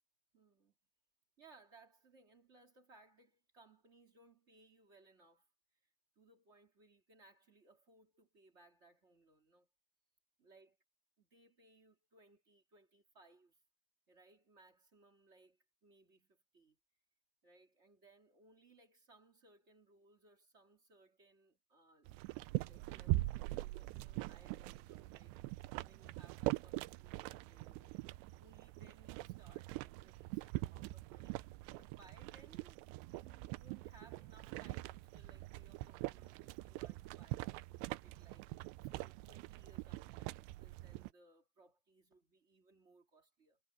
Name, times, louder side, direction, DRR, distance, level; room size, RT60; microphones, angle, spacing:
voice 1, 0.3-0.7 1.4-5.5 5.8-9.7 10.4-10.7 11.2-13.6 14.1-16.8 17.4-22.1 22.6-25.4 25.8-37.5 38.0-38.5 38.8-43.6, right 2 dB, 30° right, 1.3 m, -66 dB
sound 1, 22.1-41.1, right 19 dB, 80° right, 2.6 m, -43 dB
omnidirectional pair, 5.3 m